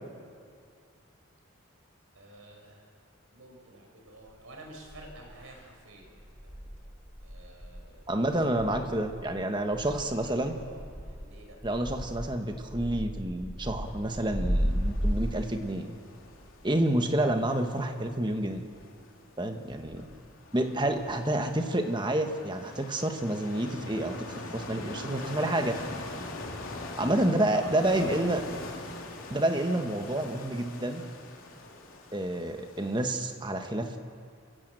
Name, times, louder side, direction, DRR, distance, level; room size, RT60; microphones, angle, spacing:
voice 1, 2.1-3.0 3.3-6.9 7.2-8.1 8.4-9.1 10.2-11.6 19.9-20.1 27.5-28.9, right 1 dB, 85° right, 2 dB, 4.8 m, -51 dB
sound 1, 4.3-4.4 4.9-5.5 6.0-15.2, equal, 5° left, 4.8 m, -34 dB
voice 2, 8.1-10.6 11.6-16.0 16.6-18.6 19.4-20.0 20.5-25.7 27.0-28.4 29.3-31.0 32.1-34.0, right 1 dB, 20° right, 5 dB, 1.4 m, -29 dB
sound 2, 13.6-33.3, left 2 dB, 85° left, 2.8 m, -43 dB
26.0 x 16.0 x 7.8 m, 2.3 s
head